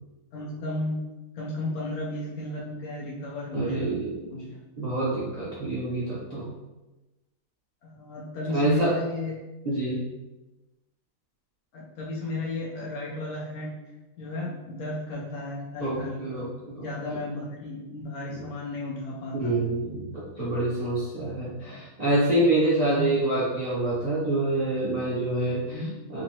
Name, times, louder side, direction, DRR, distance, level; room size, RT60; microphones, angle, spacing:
voice 1, 0.3-1.0 1.3-4.0 4.3-4.6 7.8-9.4 11.7-13.8 14.2-16.5 16.8-19.6 21.6-21.9 22.8-23.2 25.7-25.9, left 2 dB, 65° left, -5 dB, 1.0 m, -34 dB
voice 2, 3.5-4.3 4.8-6.5 8.5-8.9 9.6-10.1 15.8-16.9 18.3-18.4 19.3-25.8 26.1-26.2, right 1 dB, 70° right, -9 dB, 0.3 m, -26 dB
3.8 x 3.1 x 2.8 m, 1.1 s
omnidirectional pair, 2.1 m